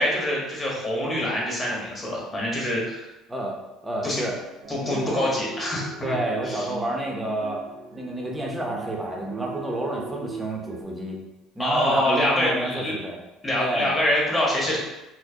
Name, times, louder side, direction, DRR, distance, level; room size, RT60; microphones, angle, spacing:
voice 1, 0.0-3.1 4.0-4.2 4.7-6.2 6.4-6.6 11.6-12.9 13.4-14.8, left 1 dB, 20° left, -4 dB, 1.1 m, -25 dB
voice 2, 3.8-4.3 4.8-5.2 6.0-7.6 7.9-11.2 11.5-13.2 13.5-14.0, right 1 dB, 10° right, -1 dB, 0.6 m, -29 dB
sound 1, 4.6-10.8, right 4 dB, 55° right, 0.5 m, -38 dB
4.5 x 2.0 x 2.7 m, 0.96 s
cardioid pair, 115°, 0 cm